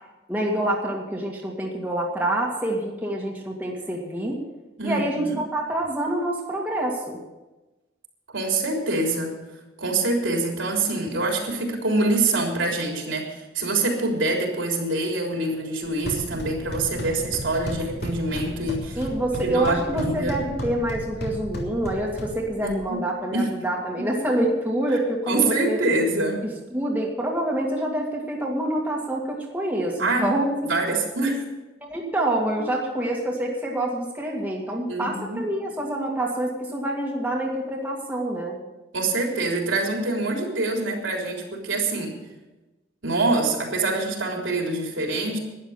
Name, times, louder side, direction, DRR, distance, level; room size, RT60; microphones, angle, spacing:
voice 1, 0.3-4.4 4.8-7.2 19.0-25.8 26.4-30.5 31.8-38.6, right 1 dB, 10° right, -2 dB, 2.1 m, -26 dB
voice 2, 4.8-5.4 8.3-9.3 9.8-19.0 19.3-20.4 22.6-23.0 23.3-23.5 25.3-26.4 30.0-30.3 30.6-31.4 34.9-35.4 38.9-42.1 43.0-45.4, right 2 dB, 80° right, 0 dB, 3.6 m, -25 dB
sound 1, 15.8-22.8, right 1 dB, 55° left, 3.1 m, -34 dB
12.5 x 10.5 x 7.2 m, 1.1 s
head